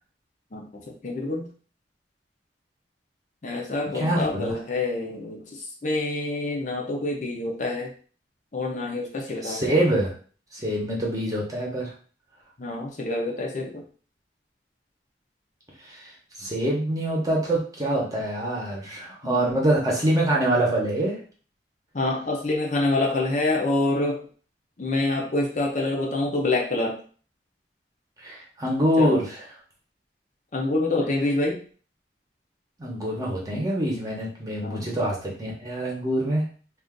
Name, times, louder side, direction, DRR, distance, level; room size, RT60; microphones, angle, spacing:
voice 1, 0.5-1.5 3.4-7.9 8.5-9.8 12.6-13.8 19.2-19.5 21.9-24.2 24.8-27.0 29.0-29.2 30.5-31.6 34.6-34.9, left 2 dB, 45° left, 0 dB, 0.6 m, -27 dB
voice 2, 3.8-4.6 9.4-10.1 10.5-11.9 15.8-21.2 28.2-29.4 32.8-36.5, right 1 dB, 20° right, -3 dB, 0.9 m, -25 dB
2.5 x 2.4 x 3.6 m, 0.41 s
head